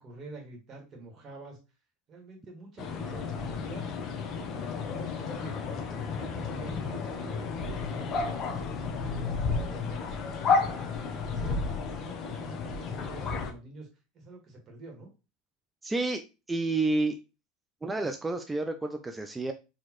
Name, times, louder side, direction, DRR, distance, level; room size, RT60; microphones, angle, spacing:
voice 1, 0.0-1.6 2.1-3.9 4.3-5.6 5.9-10.1 10.4-11.6 11.9-13.9 14.1-15.1, right 2 dB, 40° right, 1 dB, 1.8 m, -47 dB
sound 1, 2.8-13.5, left 4 dB, 40° left, 0.9 m, -32 dB
voice 2, 15.8-16.2 16.5-17.2 17.8-19.5, right 2 dB, 10° right, 6 dB, 0.4 m, -29 dB
4.2 x 3.0 x 3.0 m, 0.29 s
supercardioid pair, 115°, 0 cm